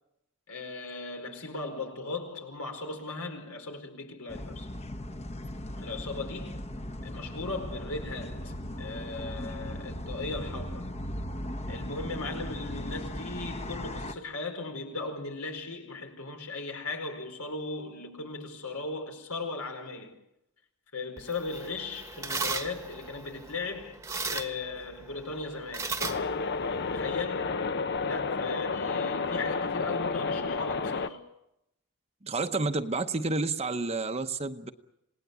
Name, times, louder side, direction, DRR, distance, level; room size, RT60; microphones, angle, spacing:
voice 1, 0.5-4.7 5.8-6.6 7.0-10.9 11.7-20.1 20.9-24.0 24.3-25.9 26.9-27.6 28.0-31.3, left 3 dB, 80° left, 4.8 m, -37 dB
sound 1, 4.3-14.1, left 1 dB, 30° left, 1.1 m, -38 dB
sound 2, 21.2-27.2, right 4 dB, 15° right, 1.2 m, -37 dB
sound 3, 26.0-31.1, left 4 dB, 50° left, 0.8 m, -31 dB
voice 2, 32.2-34.7, right 3 dB, 30° right, 0.9 m, -30 dB
27.5 x 19.0 x 8.4 m
head